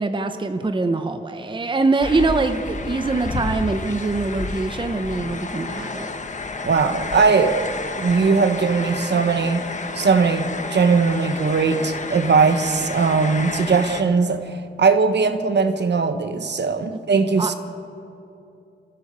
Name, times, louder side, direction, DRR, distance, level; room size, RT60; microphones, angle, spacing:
voice 1, 0.0-6.1 16.9-17.0 17.4-17.5, right 3 dB, 25° right, 0.8 m, -23 dB
sound 1, 2.0-14.0, left 3 dB, 40° left, 1.2 m, -31 dB
voice 2, 6.6-7.7 7.9-9.6 9.9-17.6, right 5 dB, 65° right, 1.2 m, -19 dB
29.5 x 15.0 x 6.8 m
wide cardioid pair, 175°, 20 cm